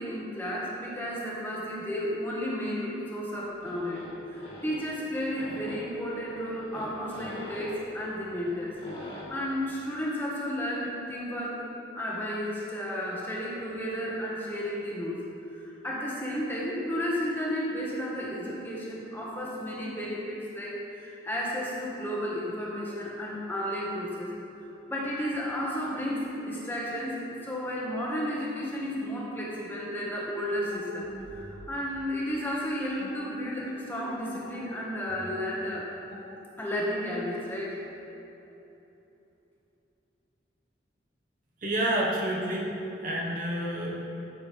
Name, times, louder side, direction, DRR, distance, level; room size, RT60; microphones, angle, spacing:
voice 1, 0.0-4.0 4.3-8.7 9.3-11.6 11.9-15.2 15.4-24.3 24.9-35.9 36.6-37.8, equal, 10° left, -6 dB, 1.5 m, -33 dB
sound 1, 3.3-9.2, equal, 30° left, 2.1 m, -45 dB
sound 2, 30.7-36.9, equal, 85° left, 2.3 m, -48 dB
voice 2, 41.6-42.7 43.0-44.0, right 1 dB, 45° right, -3 dB, 1.3 m, -29 dB
14.0 x 7.2 x 3.4 m, 3.0 s
head